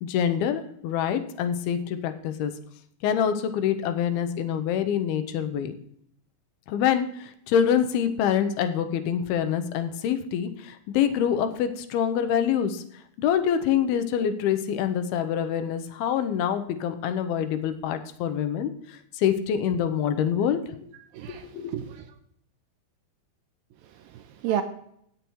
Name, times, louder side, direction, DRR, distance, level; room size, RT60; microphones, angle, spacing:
voice 1, 0.0-2.5 3.0-5.7 6.7-12.8 13.2-20.8 21.3-21.7, left 8 dB, 80° left, 9 dB, 2.6 m, -26 dB
voice 2, 21.1-22.1 23.8-24.6, right 10 dB, 80° right, 8 dB, 2.2 m, -32 dB
17.0 x 6.9 x 3.1 m, 0.68 s
omnidirectional pair, 4.5 m